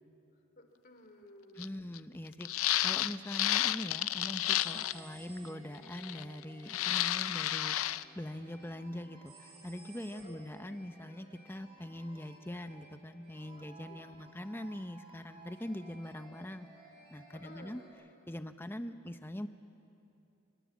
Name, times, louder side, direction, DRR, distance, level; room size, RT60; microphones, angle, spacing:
voice 1, 0.6-1.7 10.1-10.4 13.9-14.0 17.3-17.8, left 1 dB, 45° left, 5 dB, 3.1 m, -54 dB
voice 2, 1.5-16.7 17.1-17.8 18.3-19.5, left 1 dB, 10° left, 9 dB, 0.8 m, -43 dB
sound 1, 1.6-1.7 1.9-2.0 2.4-5.0 5.9-6.4 6.7-8.0, left 13 dB, 90° left, 0.5 m, -31 dB
sound 2, 4.4-5.9 9.3-10.7, right 5 dB, 80° right, 6.5 m, -58 dB
sound 3, 4.6-17.9, right 2 dB, 25° right, 7.0 m, -58 dB
29.0 x 24.0 x 7.3 m, 2.8 s
head